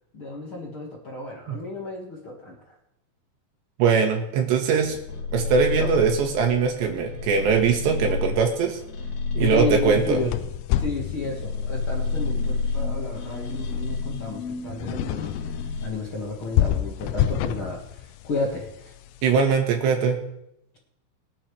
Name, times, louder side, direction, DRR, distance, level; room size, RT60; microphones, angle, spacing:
voice 1, 0.1-2.8 5.7-5.9 9.4-10.3 10.8-15.4 15.8-18.9, left 2 dB, 50° left, -3 dB, 1.6 m, -32 dB
voice 2, 3.8-5.0 5.3-8.8 9.4-10.2 19.2-20.2, right 6 dB, 70° right, 3 dB, 3.7 m, -21 dB
sound 1, 4.6-10.7 11.1-15.9, left 4 dB, 65° left, 3.7 m, -30 dB
sound 2, 10.0-19.4, left 12 dB, 80° left, 2.6 m, -30 dB
23.0 x 9.2 x 3.4 m, 0.82 s
omnidirectional pair, 5.4 m